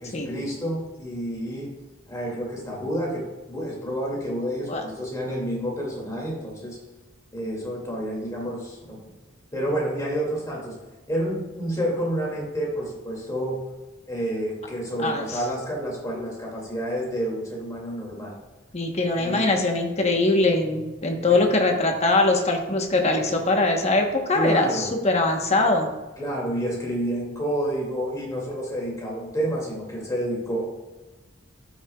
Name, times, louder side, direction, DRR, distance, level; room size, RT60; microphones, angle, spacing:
voice 1, 0.0-1.7 2.1-6.8 7.3-9.0 9.5-10.8 11.1-13.6 14.1-18.3 19.2-19.5 21.3-21.4 24.3-24.9 26.2-30.7, equal, 15° left, -3 dB, 2.3 m, -29 dB
voice 2, 15.0-15.4 18.7-25.9, left 2 dB, 30° left, 3 dB, 1.0 m, -22 dB
12.5 x 6.5 x 2.3 m, 1.1 s
head